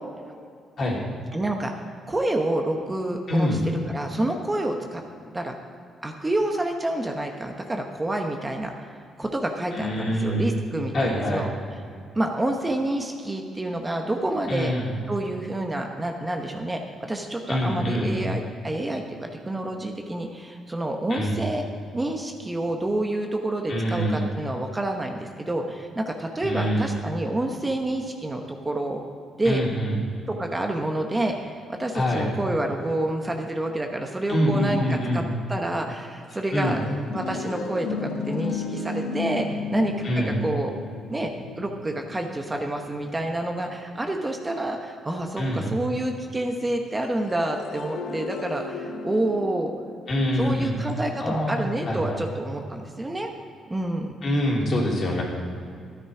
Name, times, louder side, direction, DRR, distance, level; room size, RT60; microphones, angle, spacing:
voice 1, 1.3-1.7 2.1-5.0 5.3-5.5 6.0-8.7 9.2-11.5 12.1-14.7 15.1-19.0 19.4-21.6 21.9-29.0 29.4-29.6 30.3-35.2 35.5-36.8 37.1-40.7 41.1-49.7 50.4-53.3 53.7-54.2, right 1 dB, 20° right, 3 dB, 1.1 m, -28 dB
voice 2, 3.3-3.6 9.7-10.5 10.9-11.4 14.5-14.9 17.5-18.2 21.1-21.4 23.7-24.3 26.4-26.9 29.4-30.0 31.9-32.3 34.3-35.3 36.5-36.7 40.0-40.4 45.4-45.7 50.1-50.7 51.2-52.2 54.2-55.2, equal, 50° left, -3 dB, 2.9 m, -25 dB
sound 1, 36.2-43.9 47.0-51.1, left 4 dB, 80° left, 1.1 m, -35 dB
12.5 x 9.9 x 4.9 m, 2.4 s
cardioid pair, 90°, 0 cm